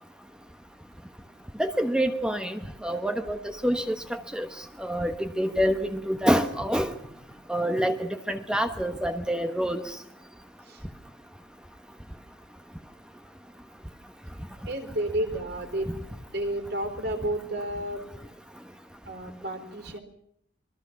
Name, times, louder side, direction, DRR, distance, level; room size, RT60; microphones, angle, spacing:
voice 1, 1.6-4.5 4.8-6.9 7.5-9.8, equal, 5° right, 7 dB, 1.2 m, -27 dB
voice 2, 14.7-18.0 19.1-20.0, right 1 dB, 55° right, 6 dB, 3.9 m, -32 dB
27.0 x 22.5 x 6.0 m, 0.72 s
head